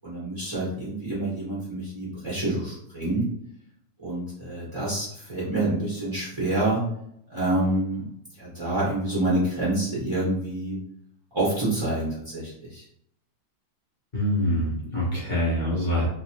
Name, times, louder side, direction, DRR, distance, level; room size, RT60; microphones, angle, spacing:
voice 1, 0.0-3.2 4.0-6.8 7.3-8.1 8.4-10.8 11.3-12.8, right 1 dB, 25° right, -9 dB, 0.7 m, -27 dB
voice 2, 14.1-16.0, left 1 dB, 35° left, -7 dB, 0.7 m, -25 dB
4.0 x 2.7 x 2.9 m, 0.74 s
omnidirectional pair, 2.4 m